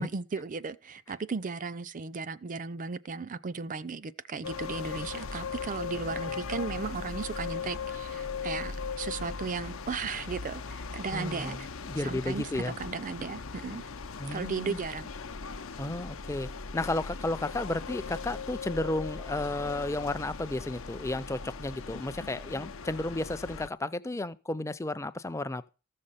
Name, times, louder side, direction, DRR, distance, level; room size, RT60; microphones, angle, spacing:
voice 1, 0.0-11.7 12.0-13.9 14.3-15.1, right 4 dB, 40° right, 0.5 m, -36 dB
sound 1, 4.4-23.7, left 5 dB, 70° left, 0.7 m, -39 dB
voice 2, 11.1-12.7 14.2-14.8 15.8-25.7, left 2 dB, 15° left, 0.5 m, -33 dB
14.0 x 6.5 x 5.6 m
head